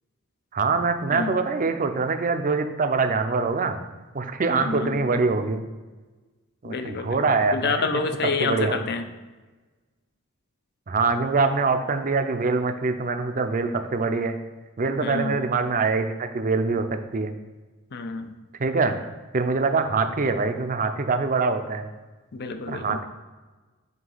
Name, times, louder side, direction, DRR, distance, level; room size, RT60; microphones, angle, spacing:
voice 1, 0.5-3.8 4.1-5.6 6.6-8.0 8.4-8.8 10.9-14.4 14.8-17.3 18.6-19.0 19.3-21.9 22.7-23.1, right 4 dB, 40° right, 8 dB, 0.5 m, -24 dB
voice 2, 4.5-5.1 6.6-9.1 15.0-15.4 17.9-18.3 22.3-23.0, left 4 dB, 50° left, 8 dB, 0.6 m, -29 dB
8.1 x 2.8 x 5.5 m, 1.3 s
head